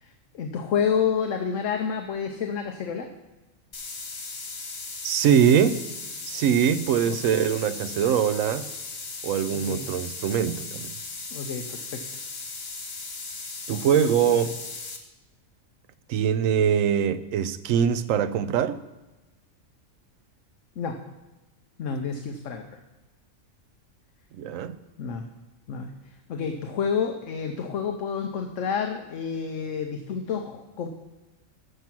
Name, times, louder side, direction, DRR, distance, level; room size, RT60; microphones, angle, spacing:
voice 1, 0.3-3.1 7.1-7.2 9.5-9.8 11.3-12.2 20.8-21.0 21.8-22.6 25.0-25.2 25.7-25.9 26.3-30.9, left 6 dB, 70° left, 1.1 m, -29 dB
sound 1, 3.7-15.0, left 3 dB, 50° left, 1.5 m, -37 dB
voice 2, 5.0-5.8 6.3-8.7 9.2-11.0 13.7-14.6 16.1-18.8 24.4-24.7, right 8 dB, 80° right, 1.0 m, -23 dB
13.5 x 5.9 x 5.9 m
omnidirectional pair, 1.4 m